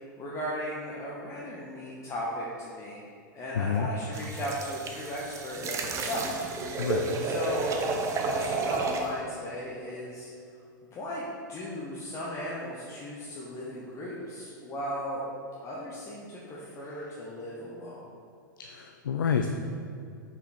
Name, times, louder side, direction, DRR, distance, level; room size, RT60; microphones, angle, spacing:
voice 1, 0.2-3.0 3.3-6.3 7.2-7.8 8.1-10.3 10.9-15.2 15.6-18.1, equal, 30° left, -6 dB, 1.0 m, -36 dB
voice 2, 3.5-3.9 6.8-7.4 18.6-19.5, left 7 dB, 85° left, 5 dB, 0.4 m, -29 dB
sound 1, 4.1-9.1, right 3 dB, 30° right, 0.7 m, -31 dB
5.8 x 4.4 x 4.3 m, 2.6 s
hypercardioid pair, 105°, 11 cm